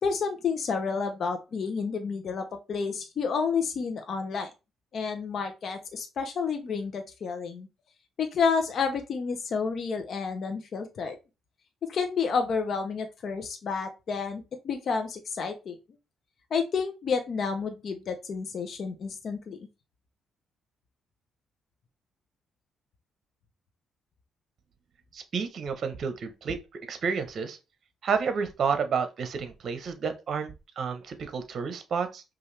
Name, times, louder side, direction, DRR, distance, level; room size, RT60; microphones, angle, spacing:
voice 1, 0.0-4.5 4.9-7.7 8.2-11.1 11.9-15.8 16.5-19.6, left 5 dB, 55° left, 0.8 m, -30 dB
voice 2, 25.1-27.6 28.0-32.2, right 5 dB, 55° right, 0.9 m, -30 dB
5.5 x 2.6 x 3.3 m
cardioid pair, 90°, 0 cm